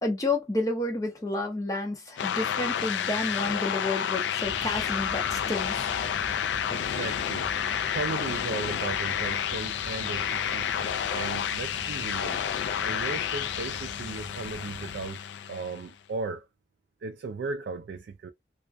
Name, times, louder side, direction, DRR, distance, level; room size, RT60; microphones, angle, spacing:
voice 1, 0.0-5.7, left 2 dB, 20° left, 0.6 m, -30 dB
sound 1, 2.2-15.9, left 8 dB, 85° left, 0.3 m, -30 dB
sound 2, 4.4-15.1, right 1 dB, 45° right, 0.8 m, -45 dB
voice 2, 6.7-7.5 7.9-12.4 12.8-15.2 15.5-16.5 17.0-18.3, right 4 dB, 70° right, 0.3 m, -36 dB
2.4 x 2.1 x 2.4 m
head